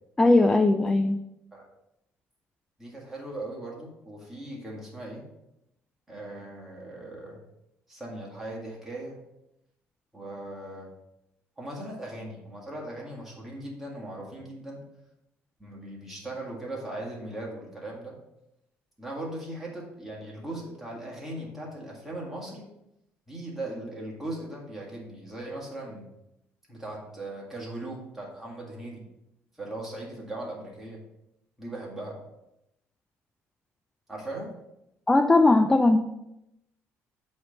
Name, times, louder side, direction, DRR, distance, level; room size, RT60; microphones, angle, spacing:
voice 1, 0.2-1.2 35.1-36.0, left 2 dB, 10° left, 6 dB, 0.3 m, -19 dB
voice 2, 2.8-5.2 6.1-7.4 7.9-9.2 10.1-10.9 11.6-14.8 15.6-18.1 19.0-22.7 23.3-26.1 26.7-29.0 29.6-31.0 31.6-32.2 34.1-34.5, right 1 dB, 5° right, -4 dB, 1.9 m, -38 dB
8.0 x 3.2 x 5.1 m, 0.85 s
cardioid pair, 155°, 5 cm